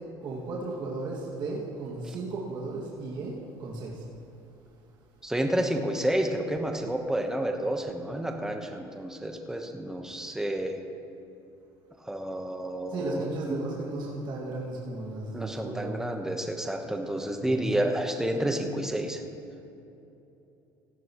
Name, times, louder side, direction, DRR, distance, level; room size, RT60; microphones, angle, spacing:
voice 1, 0.2-3.3 3.6-4.0 12.9-16.1 17.4-17.8, right 2 dB, 55° right, -5 dB, 2.2 m, -35 dB
voice 2, 5.2-10.8 12.0-13.6 15.3-19.2, right 1 dB, 5° right, 3 dB, 1.2 m, -30 dB
17.5 x 13.0 x 3.1 m, 2.9 s
cardioid pair, 115°, 9 cm